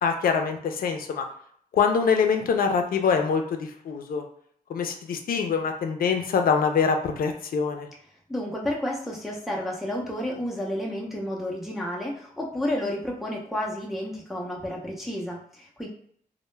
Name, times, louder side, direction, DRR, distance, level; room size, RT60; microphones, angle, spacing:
voice 1, 0.0-1.2 1.7-4.2 4.7-7.9, left 6 dB, 80° left, 5 dB, 0.4 m, -24 dB
voice 2, 8.3-15.9, left 1 dB, ahead, -3 dB, 0.4 m, -31 dB
2.1 x 2.0 x 3.1 m, 0.63 s
wide cardioid pair, 115°, 15 cm